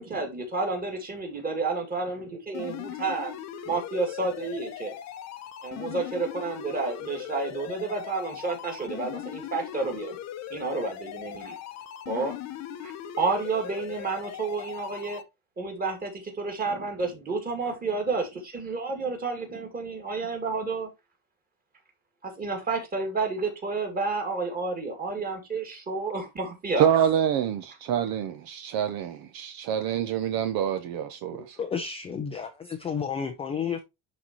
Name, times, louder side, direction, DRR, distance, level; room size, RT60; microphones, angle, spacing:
voice 1, 0.0-3.4 3.6-4.9 5.6-10.2 10.5-11.6 12.1-12.4 12.8-15.2 15.6-20.9 22.2-26.9, right 3 dB, 20° right, 2.4 m, -30 dB
sound 1, 2.5-15.2, left 11 dB, 35° left, 0.8 m, -39 dB
voice 2, 26.8-31.3, right 9 dB, 50° right, 0.8 m, -26 dB
voice 3, 31.6-33.8, left 6 dB, 15° left, 0.4 m, -31 dB
11.0 x 4.2 x 2.9 m
cardioid pair, 175°, 46 cm